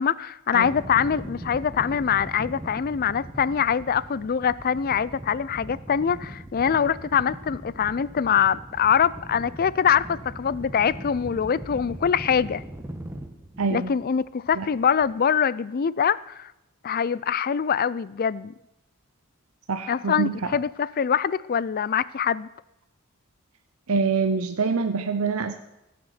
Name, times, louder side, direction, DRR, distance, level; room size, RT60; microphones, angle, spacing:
voice 1, 0.0-12.6 13.7-16.5 16.8-18.5 19.9-22.5, left 7 dB, 40° left, 0.4 m, -24 dB
sound 1, 0.6-15.2, right 1 dB, 10° right, 1.1 m, -40 dB
voice 2, 13.6-13.9 14.6-14.7 19.7-20.5 23.9-25.5, right 4 dB, 75° right, 0.7 m, -25 dB
16.0 x 6.7 x 8.1 m
head